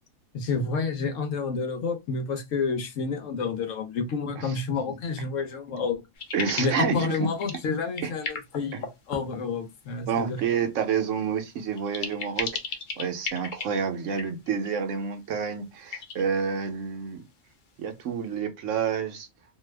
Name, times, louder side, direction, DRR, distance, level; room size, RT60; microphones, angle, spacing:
voice 1, 0.3-6.0 6.6-10.4, left 4 dB, 70° left, 1.0 m, -29 dB
sound 1, 6.2-6.9 7.1-7.7 7.9-9.4 11.8-13.7 14.1-14.7 15.9-16.2, left 5 dB, 50° left, 0.6 m, -35 dB
voice 2, 6.3-7.3 8.0-8.1 8.7-8.8 10.1-12.5 13.0-17.2 17.8-19.3, right 7 dB, 70° right, 1.0 m, -29 dB
2.7 x 2.3 x 3.2 m
omnidirectional pair, 1.4 m